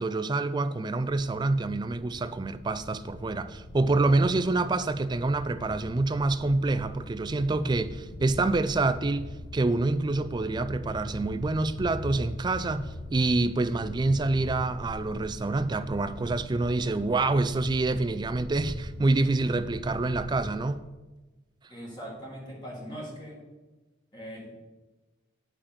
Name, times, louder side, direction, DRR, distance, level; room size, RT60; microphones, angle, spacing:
voice 1, 0.0-20.9, right 2 dB, 20° right, 0.3 m, -27 dB
sound 1, 1.1-20.5, left 1 dB, 90° left, 1.2 m, -41 dB
voice 2, 21.7-23.4 24.1-24.6, equal, 20° left, 1.6 m, -41 dB
8.7 x 5.2 x 5.7 m
head